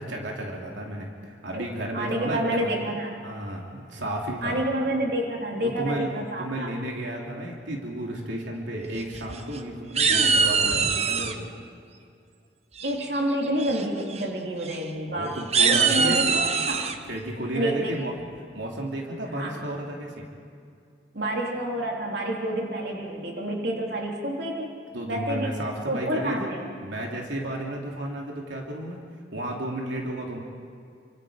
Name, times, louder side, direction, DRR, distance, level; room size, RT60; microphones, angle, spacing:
voice 1, 0.0-2.7 3.2-4.6 5.6-6.1 6.4-11.5 15.1-16.3 17.0-18.1 18.5-20.2 24.9-26.5 26.8-29.0 29.3-30.4, right 1 dB, 90° right, -1 dB, 3.2 m, -33 dB
voice 2, 1.9-3.2 4.4-6.7 10.1-10.4 12.8-16.9 17.5-17.9 19.2-19.6 21.1-24.7 25.1-25.6 25.9-26.6, right 1 dB, 60° right, -1 dB, 3.5 m, -28 dB
sound 1, 9.0-9.6 10.0-11.3 12.8-13.2 13.6-13.8 14.1-14.2 14.6-14.8 15.4-17.0, right 5 dB, 35° right, 1.0 m, -23 dB
29.0 x 25.5 x 5.2 m, 2.4 s
head